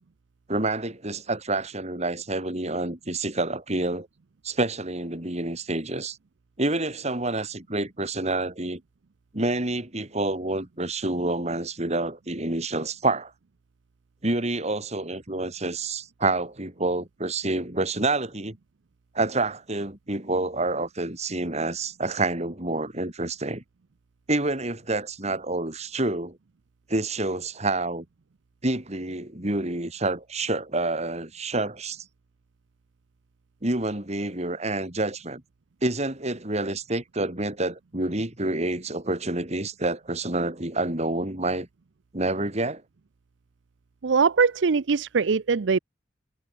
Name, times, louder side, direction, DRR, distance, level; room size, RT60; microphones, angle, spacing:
voice 1, 0.5-4.1 4.4-6.2 6.6-8.8 9.3-13.3 14.2-18.6 19.1-23.6 24.3-26.4 26.9-28.0 28.6-32.0 33.6-35.4 35.8-41.7 42.1-42.8, right 2 dB, 35° right, 3.2 m, -28 dB
voice 2, 44.0-45.8, right 5 dB, 70° right, 0.6 m, -22 dB
head